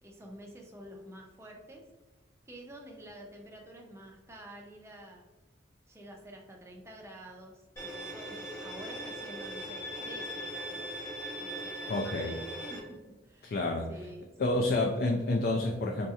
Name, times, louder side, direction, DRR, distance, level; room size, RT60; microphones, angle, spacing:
voice 1, 0.0-1.9 2.5-5.2 5.9-11.1 11.4-13.0 13.2-14.6, right 1 dB, 15° right, 0 dB, 0.5 m, -49 dB
Bowed string instrument, 7.8-12.8, equal, 15° left, 0.8 m, -40 dB
voice 2, 11.9-12.4 13.4-13.9 14.4-16.1, left 2 dB, 50° left, 1 dB, 0.3 m, -29 dB
3.9 x 2.8 x 2.3 m, 1.2 s
head